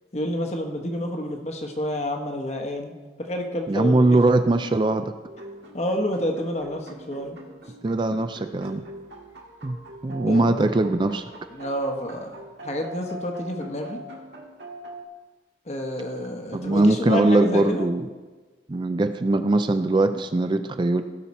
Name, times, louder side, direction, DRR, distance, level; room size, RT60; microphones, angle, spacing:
voice 1, 0.1-4.1 5.7-7.4 10.3-10.5 11.5-12.4 12.6-14.0 15.7-17.9, left 1 dB, 40° left, 4 dB, 1.1 m, -29 dB
voice 2, 3.7-5.1 7.8-8.8 9.6-9.8 10.0-11.2 16.5-18.1 18.7-21.0, right 2 dB, 25° right, 9 dB, 0.4 m, -21 dB
sound 1, 5.3-15.0, right 1 dB, 85° right, 1.7 m, -42 dB
16.5 x 5.6 x 4.2 m, 1.3 s
head